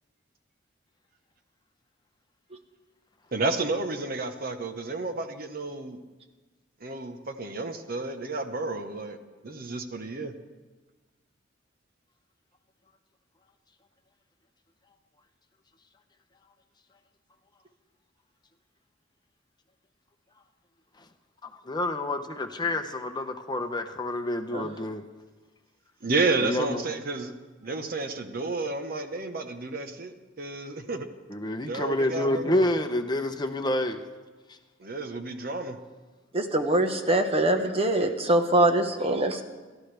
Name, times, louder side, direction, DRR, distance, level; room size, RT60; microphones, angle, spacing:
voice 1, 3.3-6.0 6.8-9.2 9.4-10.3 26.0-27.3 27.6-31.1 31.6-32.6 34.8-35.8, right 3 dB, 50° right, 1.1 m, -31 dB
voice 2, 21.4-25.0 26.4-26.8 31.3-34.0, left 1 dB, 25° left, 0.8 m, -28 dB
voice 3, 36.3-39.4, right 1 dB, 30° right, 1.2 m, -23 dB
29.5 x 13.0 x 3.4 m
head